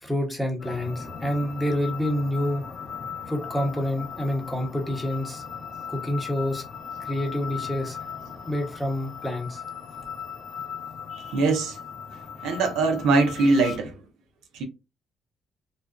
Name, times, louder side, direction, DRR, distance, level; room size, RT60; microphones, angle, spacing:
voice 1, 0.0-2.7 3.3-5.4 5.9-6.6 7.1-8.0 8.4-9.6, left 1 dB, 5° left, 0.8 m, -28 dB
sound 1, 0.6-13.8, left 6 dB, 50° left, 0.6 m, -38 dB
voice 2, 11.1-11.8 12.4-13.9 14.5-14.6, right 3 dB, 90° right, 0.6 m, -22 dB
2.4 x 2.3 x 2.3 m
cardioid pair, 90°, 0 cm